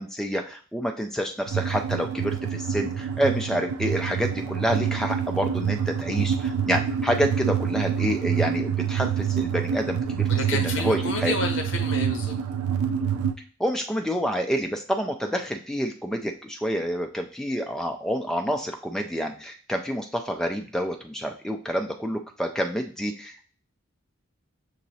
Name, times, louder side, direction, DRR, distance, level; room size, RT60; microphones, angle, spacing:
voice 1, 0.0-11.3 13.6-23.4, equal, ahead, 3 dB, 0.3 m, -28 dB
sound 1, 1.5-13.3, right 8 dB, 90° right, 0.4 m, -27 dB
voice 2, 10.3-12.3, left 3 dB, 60° left, 3 dB, 0.8 m, -30 dB
6.2 x 2.9 x 2.7 m, 0.41 s
head